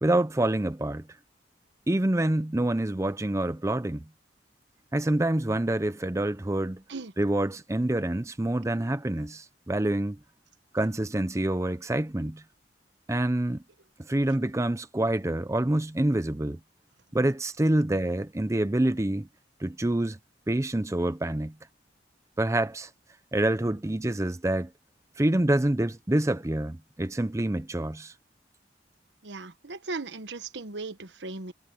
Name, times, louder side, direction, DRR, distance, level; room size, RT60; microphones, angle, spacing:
voice 1, 0.0-1.0 1.9-4.0 4.9-6.8 7.2-10.2 10.7-12.4 13.1-13.6 14.1-16.6 17.1-19.3 19.6-20.2 20.5-21.5 22.4-22.9 23.3-24.7 25.2-28.1, right 1 dB, 15° right, 0.6 m, -26 dB
voice 2, 29.2-31.5, right 3 dB, 80° right, 1.2 m, -37 dB
head